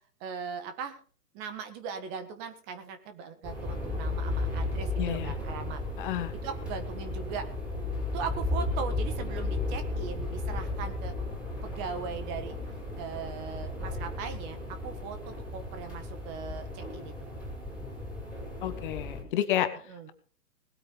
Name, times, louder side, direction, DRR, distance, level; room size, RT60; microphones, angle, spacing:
voice 1, 0.2-1.0 1.3-5.8 6.4-7.5 8.1-11.1 11.6-12.5 12.9-17.1 19.9-20.1, right 6 dB, 20° right, 9 dB, 1.5 m, -39 dB
sound 1, 3.4-19.2, left 2 dB, ahead, 5.6 m, -34 dB
voice 2, 5.0-5.3 6.0-6.3 18.6-19.7, left 12 dB, 30° left, 9 dB, 1.6 m, -30 dB
19.5 x 8.8 x 5.4 m, 0.42 s
hypercardioid pair, 145°, 49 cm